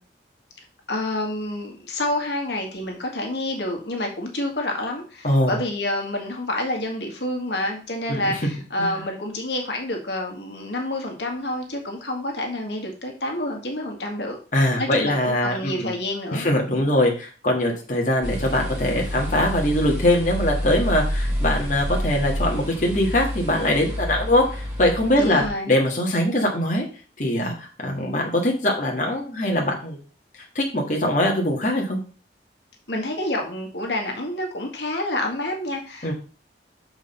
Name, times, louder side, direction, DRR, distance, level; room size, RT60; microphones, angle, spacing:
voice 1, 0.9-14.4 14.8-16.9 25.2-25.8 32.9-36.1, left 1 dB, 75° left, 2 dB, 1.8 m, -28 dB
voice 2, 5.2-5.6 8.1-8.4 8.8-9.0 14.5-16.0 16.3-26.8 27.2-30.0 30.5-32.0 36.0-36.1, left 1 dB, 45° left, 0 dB, 1.7 m, -22 dB
sound 1, 18.2-25.5, equal, 15° right, 3.7 m, -28 dB
6.5 x 4.8 x 5.5 m, 0.36 s
head